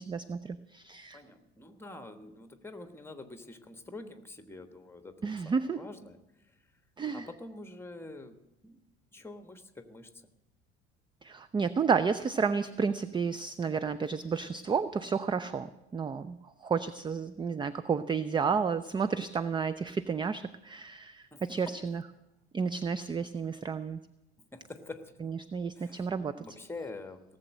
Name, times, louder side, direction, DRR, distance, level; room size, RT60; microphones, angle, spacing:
voice 1, 0.0-1.2 5.2-5.8 7.0-7.3 11.2-16.4 16.6-22.0 22.5-24.0 25.2-26.5, right 5 dB, 15° right, 14 dB, 0.5 m, -31 dB
voice 2, 1.1-6.2 7.1-8.8 9.1-10.1 21.3-21.8 24.5-25.3 25.8-26.1 26.4-27.2, left 2 dB, 5° left, 7 dB, 1.4 m, -46 dB
17.5 x 7.5 x 7.6 m, 0.93 s
figure-of-eight pair, 65°, 33 cm